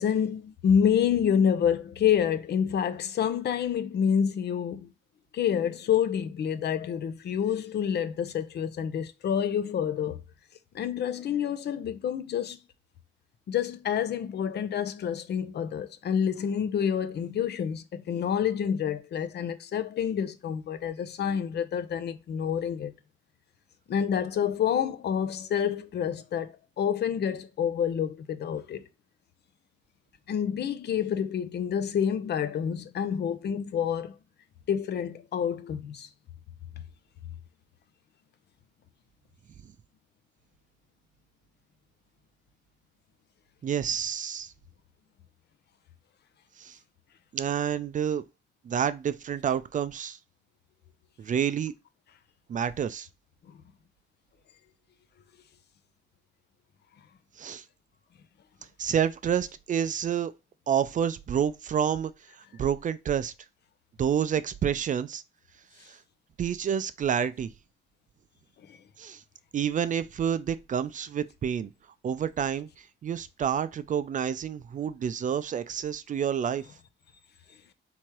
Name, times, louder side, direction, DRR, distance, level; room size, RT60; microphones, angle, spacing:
voice 1, 0.0-4.9 5.3-10.2 10.7-12.6 13.5-22.9 23.9-28.9 30.3-34.2 34.7-36.1 68.7-68.8, left 8 dB, 55° left, 0.7 m, -28 dB
voice 2, 43.6-44.5 46.6-46.8 47.3-48.2 48.6-50.2 51.2-51.7 52.5-53.1 57.4-57.6 58.8-60.3 60.7-62.1 62.6-63.3 64.0-65.2 65.9-66.0 66.4-67.5 69.0-69.2 69.5-71.7 72.0-76.7, right 8 dB, 40° right, 0.4 m, -29 dB
3.6 x 3.1 x 4.5 m
cardioid pair, 90°, 20 cm